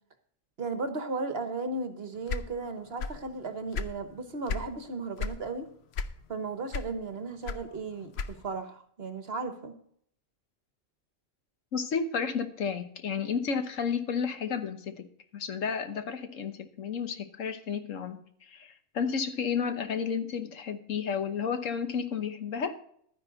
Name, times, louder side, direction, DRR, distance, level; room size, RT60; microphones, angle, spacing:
voice 1, 0.6-5.7 6.3-9.7, right 3 dB, 50° right, 8 dB, 1.4 m, -35 dB
sound 1, 2.3-3.3 3.6-4.7 5.2-5.4 5.9-6.4 6.7-8.6, left 5 dB, 60° left, 0.9 m, -34 dB
voice 2, 11.7-15.1 15.3-22.7, left 6 dB, 75° left, 9 dB, 1.4 m, -32 dB
11.5 x 10.0 x 4.0 m, 0.64 s
omnidirectional pair, 1.3 m